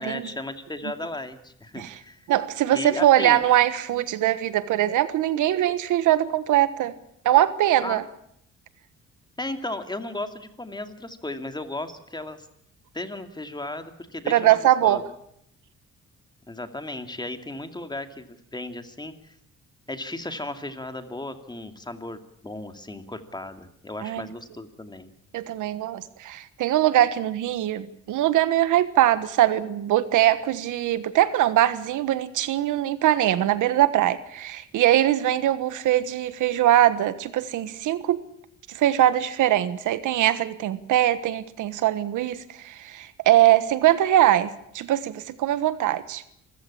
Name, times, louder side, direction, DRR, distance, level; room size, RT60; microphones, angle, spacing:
voice 1, 0.0-2.3 2.7-3.5 7.8-8.0 9.4-12.5 12.9-15.0 16.5-18.3 18.5-19.3 19.9-25.1, left 2 dB, 15° left, 8 dB, 2.5 m, -35 dB
voice 2, 2.3-6.9 7.2-8.0 14.3-15.0 24.0-24.2 25.3-38.2 38.7-46.2, right 13 dB, 85° right, 14 dB, 1.4 m, -22 dB
26.5 x 15.0 x 8.8 m, 0.74 s
cardioid pair, 90°, 30 cm